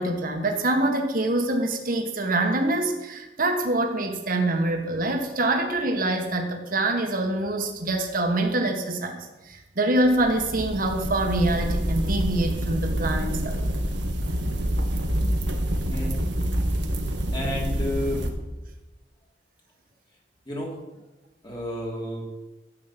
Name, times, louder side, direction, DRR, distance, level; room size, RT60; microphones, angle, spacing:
voice 1, 0.0-13.6, right 2 dB, 50° right, 3 dB, 1.5 m, -25 dB
sound 1, 10.1-18.3, equal, 90° right, 1.5 m, -27 dB
voice 2, 15.9-16.2 16.6-16.8 17.3-18.3 20.5-20.8 21.4-22.2, left 1 dB, 25° left, -2 dB, 3.0 m, -31 dB
12.5 x 8.5 x 5.9 m, 1.1 s
head